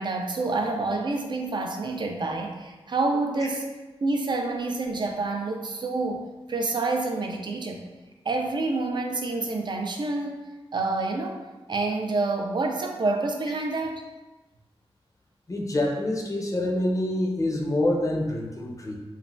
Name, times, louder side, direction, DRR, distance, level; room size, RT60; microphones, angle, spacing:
voice 1, 0.0-3.7 4.0-7.8 8.3-10.4 10.7-11.4 11.7-14.0, right 3 dB, 50° right, 3 dB, 0.4 m, -28 dB
voice 2, 15.5-19.0, left 1 dB, 30° left, 0 dB, 0.5 m, -26 dB
3.1 x 2.1 x 2.6 m, 1.1 s
wide cardioid pair, 75°, 10 cm